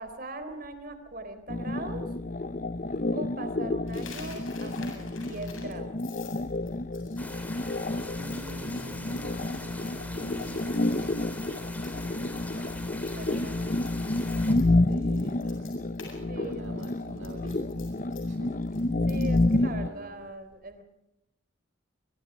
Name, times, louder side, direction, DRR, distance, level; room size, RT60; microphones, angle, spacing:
voice 1, 0.0-2.0 3.1-6.0 12.9-14.0 14.5-14.7 16.3-17.0 19.1-20.8, right 2 dB, 45° right, 9 dB, 3.7 m, -40 dB
sound 1, 1.5-19.9, left 2 dB, 40° left, 0.7 m, -29 dB
Coin (dropping), 3.9-12.1 12.4-12.8 13.0-16.2 16.4-19.6, left 6 dB, 75° left, 7.9 m, -50 dB
sound 2, 7.2-14.6, left 1 dB, 10° left, 3.3 m, -43 dB
voice 2, 8.2-11.6 14.9-15.7 16.2-17.9 18.3-18.9 19.4-20.3, right 1 dB, 65° right, 3 dB, 2.0 m, -46 dB
27.5 x 23.5 x 5.1 m, 0.88 s
head